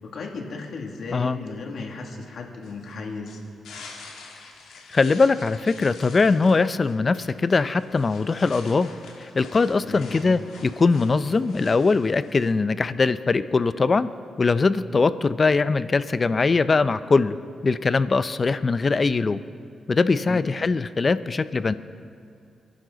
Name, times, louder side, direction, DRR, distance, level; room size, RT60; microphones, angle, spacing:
voice 1, 0.0-3.4 9.8-10.1 20.2-20.5, left 4 dB, 70° left, 1 dB, 2.4 m, -35 dB
sound 1, 2.6-12.5, left 4 dB, 90° left, 2.7 m, -46 dB
voice 2, 4.9-8.9 9.3-14.1 14.4-17.4 17.6-19.4 19.9-21.7, left 4 dB, 40° left, 13 dB, 0.6 m, -21 dB
29.5 x 11.5 x 4.0 m, 2.4 s
cardioid pair, 80°, 0 cm